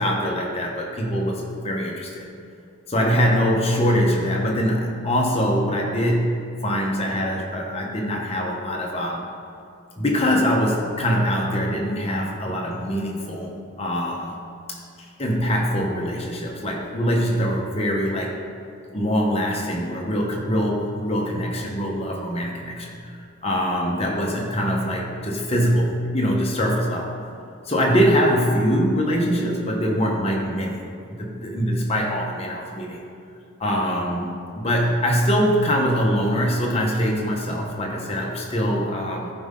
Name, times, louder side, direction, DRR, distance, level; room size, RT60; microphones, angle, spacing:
voice 1, 0.0-2.3 2.9-6.4 6.6-9.2 10.0-14.4 14.7-18.3 18.9-27.2 27.6-30.8 31.2-33.0 33.6-39.3, equal, 25° left, -1 dB, 1.1 m, -23 dB
13.5 x 5.4 x 3.8 m, 2.5 s
head